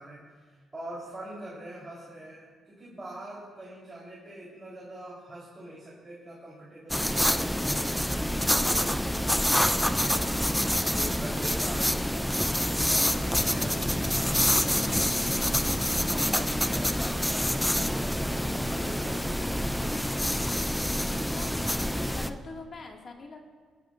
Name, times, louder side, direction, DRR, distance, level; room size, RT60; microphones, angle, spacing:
voice 1, 0.0-10.4 10.9-12.4 12.9-19.8, right 1 dB, 20° right, -7 dB, 3.8 m, -44 dB
sound 1, 6.9-22.3, equal, 5° left, 0.5 m, -27 dB
voice 2, 21.1-21.8 22.1-23.4, left 3 dB, 45° left, 1 dB, 2.1 m, -44 dB
23.0 x 10.0 x 2.6 m, 1.5 s
cardioid pair, 90°, 0 cm